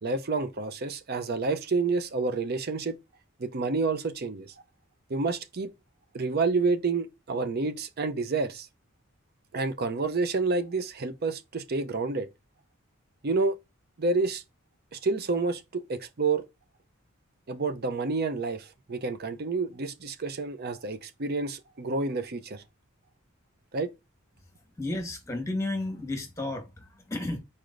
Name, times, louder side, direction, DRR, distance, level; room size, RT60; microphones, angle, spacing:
voice 1, 0.0-3.0 3.4-4.5 5.1-5.7 6.1-8.7 9.5-12.3 13.2-13.6 14.0-14.4 14.9-16.4 17.5-22.6 23.7-23.9, right 3 dB, 50° right, 0.6 m, -29 dB
voice 2, 24.8-27.4, left 2 dB, 15° left, 1.2 m, -32 dB
4.8 x 4.3 x 2.5 m
head